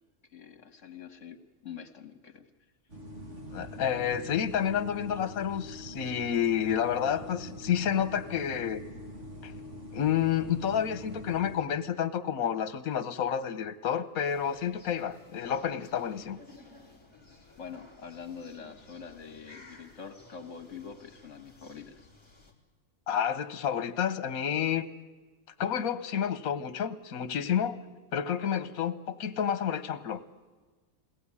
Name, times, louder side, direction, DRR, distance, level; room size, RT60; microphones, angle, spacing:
voice 1, 0.3-1.4 1.6-2.5 17.6-22.1, left 6 dB, 60° left, 8 dB, 2.0 m, -45 dB
sound 1, 2.9-11.6, equal, 55° right, 3.1 m, -44 dB
voice 2, 3.5-8.8 9.4-9.5 9.9-16.4 23.1-24.9 25.6-27.8 28.1-30.2, left 9 dB, 85° left, 14 dB, 1.4 m, -30 dB
sound 2, 14.2-22.5, left 2 dB, 20° right, 3.3 m, -55 dB
22.0 x 17.5 x 9.7 m, 1.3 s
omnidirectional pair, 1.5 m